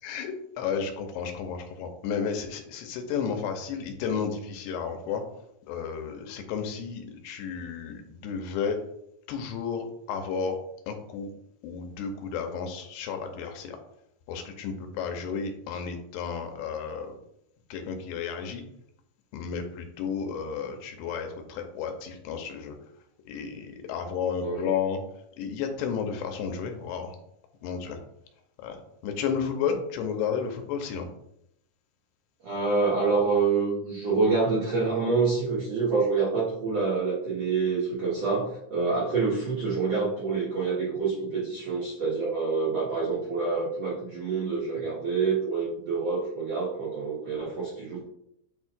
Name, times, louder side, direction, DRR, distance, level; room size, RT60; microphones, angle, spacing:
voice 1, 0.0-5.2 5.7-8.8 9.3-10.6 10.9-11.3 11.6-13.8 14.3-17.1 17.7-18.6 19.3-22.8 23.3-25.0 25.4-27.2 27.6-28.0 28.6-28.8 29.0-31.1, left 6 dB, 90° left, 5 dB, 2.8 m, -32 dB
voice 2, 32.4-48.1, right 4 dB, 70° right, -7 dB, 1.5 m, -27 dB
8.7 x 4.4 x 2.4 m, 0.77 s
omnidirectional pair, 4.9 m